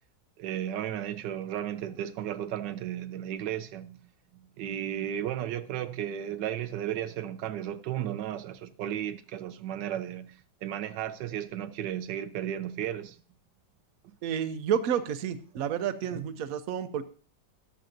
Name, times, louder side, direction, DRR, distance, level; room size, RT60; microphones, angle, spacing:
voice 1, 0.4-4.0 4.3-13.2 15.5-15.6 16.1-16.2, right 11 dB, 90° right, 1.3 m, -34 dB
voice 2, 14.2-17.0, right 9 dB, 65° right, 1.1 m, -30 dB
13.5 x 11.0 x 2.6 m
omnidirectional pair, 1.8 m